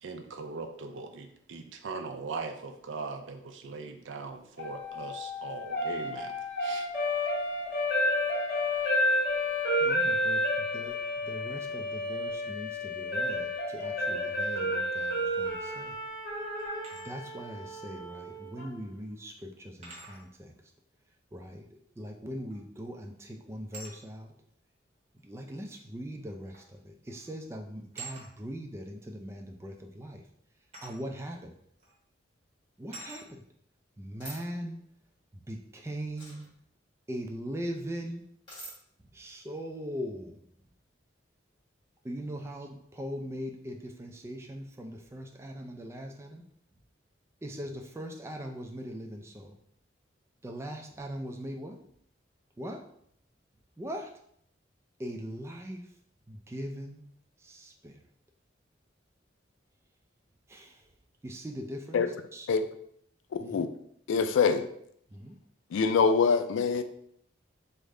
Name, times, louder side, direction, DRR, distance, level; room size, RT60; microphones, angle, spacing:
voice 1, 0.0-6.3 6.6-6.9, right 4 dB, 75° right, 6 dB, 0.4 m, -40 dB
sound 1, 4.6-18.7, left 1 dB, 60° left, 1.0 m, -31 dB
voice 2, 9.8-16.0 16.6-16.7 17.0-20.5 21.3-24.3 25.2-30.2 30.8-31.6 32.8-33.5 34.0-34.8 35.3-36.4 37.1-38.2 39.1-40.5 42.0-46.4 47.4-49.6 50.4-51.8 52.6-52.9 53.8-54.1 55.0-55.9 56.3-57.0 57.4-58.0 60.5-60.9 61.2-62.0 62.3-62.5 63.4-63.7 65.1-65.4, equal, 15° right, 3 dB, 0.3 m, -40 dB
sound 2, 16.6-17.1 18.6-18.7 19.8-20.3 22.5-22.8 23.7-24.0 25.2-25.3 26.5-26.8 27.0-27.3 27.9-28.3 30.7-31.0 31.8-31.9 32.9-33.3, right 3 dB, 35° right, 0.8 m, -46 dB
sound 3, 34.2-34.4 36.1-36.5 38.5-38.7, right 1 dB, 25° left, 1.4 m, -44 dB
voice 3, 63.3-63.7 64.1-64.7 65.7-66.8, left 5 dB, 80° left, 10 dB, 0.3 m, -24 dB
3.3 x 2.1 x 3.6 m, 0.69 s
head